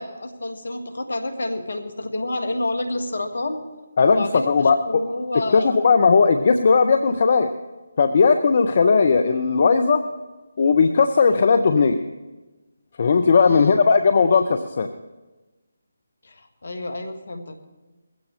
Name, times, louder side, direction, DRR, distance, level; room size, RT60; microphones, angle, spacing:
voice 1, 0.0-3.6 4.0-5.9 13.4-13.9 16.2-17.6, left 2 dB, 60° left, 6 dB, 1.9 m, -29 dB
voice 2, 4.0-5.0 5.5-7.5 8.0-10.0 10.6-12.0 13.0-14.9, left 5 dB, 40° left, 8 dB, 0.7 m, -17 dB
21.0 x 15.5 x 3.2 m, 1.2 s
figure-of-eight pair, 150°, 0 cm